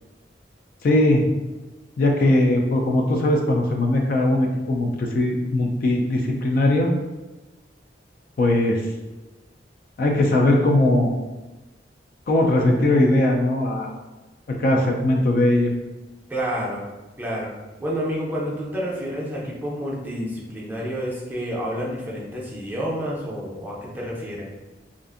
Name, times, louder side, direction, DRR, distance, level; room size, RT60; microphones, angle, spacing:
voice 1, 0.8-1.2 2.0-6.9 8.4-8.8 10.0-11.1 12.3-13.9 14.5-15.7, left 1 dB, 50° left, 1 dB, 0.3 m, -20 dB
voice 2, 16.3-16.8 17.2-17.5 17.8-24.5, equal, 10° right, -5 dB, 0.5 m, -29 dB
2.5 x 2.4 x 2.4 m, 1.1 s
head